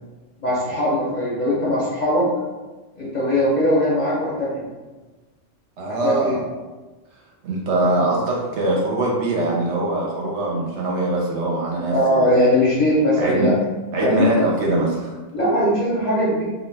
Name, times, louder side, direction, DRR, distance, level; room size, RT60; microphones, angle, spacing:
voice 1, 0.4-2.2 3.0-4.6 5.9-6.3 11.9-13.6 14.0-14.5 15.3-16.4, left 1 dB, 50° left, -8 dB, 0.6 m, -20 dB
voice 2, 5.8-6.5 7.4-12.3 13.2-13.5 13.9-15.1, right 2 dB, 65° right, -3 dB, 0.8 m, -22 dB
2.3 x 2.2 x 3.2 m, 1.2 s
omnidirectional pair, 1.4 m